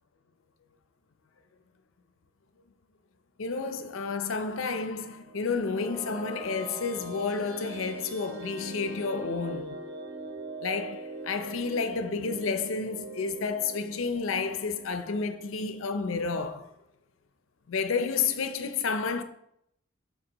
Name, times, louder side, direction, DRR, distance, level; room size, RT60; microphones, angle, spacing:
voice 1, 3.4-9.8 10.6-16.7 17.7-19.2, left 4 dB, 80° left, 0.6 m, -31 dB
sound 1, 5.0-15.9, right 3 dB, 60° right, 2.0 m, -42 dB
9.7 x 4.0 x 3.0 m
head